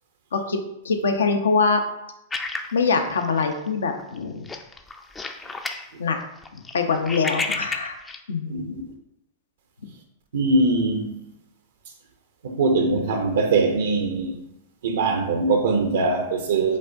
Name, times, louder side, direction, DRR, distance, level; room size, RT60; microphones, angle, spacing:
voice 1, 0.3-1.8 2.7-4.5 6.0-6.2 6.7-8.0 8.3-8.8, left 4 dB, 70° left, 0.6 m, -23 dB
sound 1, 2.3-3.7 4.0-4.2 4.5-5.9 6.2-8.2, left 3 dB, 15° left, 0.4 m, -31 dB
voice 2, 8.5-8.8 10.3-11.2 12.4-14.4 14.8-16.8, right 3 dB, 65° right, 0.5 m, -22 dB
5.3 x 3.7 x 2.6 m
figure-of-eight pair, 100°, 0 cm